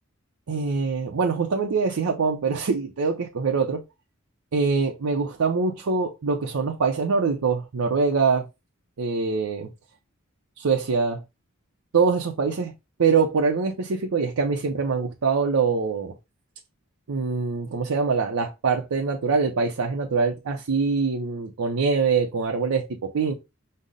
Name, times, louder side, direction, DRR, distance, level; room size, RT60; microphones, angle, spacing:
voice 1, 0.5-3.8 4.5-8.5 9.0-9.7 10.6-11.2 11.9-12.7 13.0-16.1 17.1-23.3, right 4 dB, 85° right, 0.5 m, -24 dB
5.3 x 2.0 x 3.7 m
head